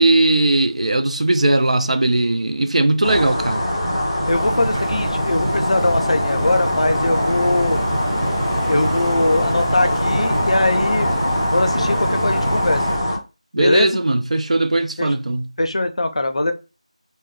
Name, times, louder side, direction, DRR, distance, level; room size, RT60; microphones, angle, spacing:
voice 1, 0.0-3.7 13.5-15.5, right 2 dB, 70° right, 0.4 m, -18 dB
sound 1, 3.0-13.2, left 1 dB, 5° left, 0.5 m, -22 dB
voice 2, 4.3-7.8 8.6-11.2 11.5-12.8 13.6-14.0 15.0-15.1 15.6-16.5, left 2 dB, 60° left, 0.5 m, -21 dB
sound 2, 4.3-13.0, right 1 dB, 30° right, 0.8 m, -28 dB
2.4 x 2.1 x 3.5 m
figure-of-eight pair, 180°, 4 cm